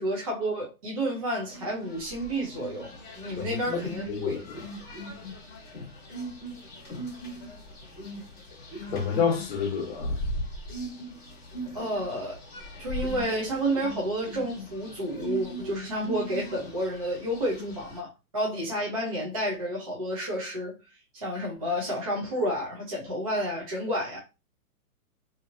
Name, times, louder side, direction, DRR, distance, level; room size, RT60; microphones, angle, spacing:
voice 1, 0.0-4.4 11.7-12.4 12.8-20.7 21.1-24.2, equal, 25° right, 0.5 m, -30 dB
sound 1, 1.5-18.0, equal, 15° left, 1.0 m, -39 dB
voice 2, 3.4-3.8 4.1-4.6 8.9-10.2, left 6 dB, 45° left, 0.9 m, -29 dB
2.7 x 2.7 x 2.5 m
hypercardioid pair, 170°, 44 cm